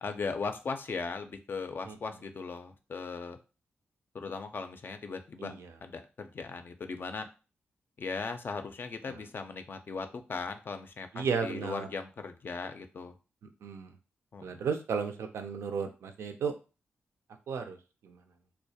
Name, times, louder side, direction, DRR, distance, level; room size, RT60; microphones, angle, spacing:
voice 1, 0.0-3.4 4.1-5.5 5.8-7.3 8.0-13.1 14.3-14.6, left 4 dB, 50° left, 7 dB, 0.4 m, -38 dB
voice 2, 5.4-5.7 9.1-9.2 11.1-11.9 13.6-13.9 14.4-16.5 17.5-17.8 18.0-18.2, right 6 dB, 75° right, 6 dB, 0.4 m, -34 dB
2.2 x 2.0 x 2.7 m, 0.32 s
cardioid pair, 55°, 5 cm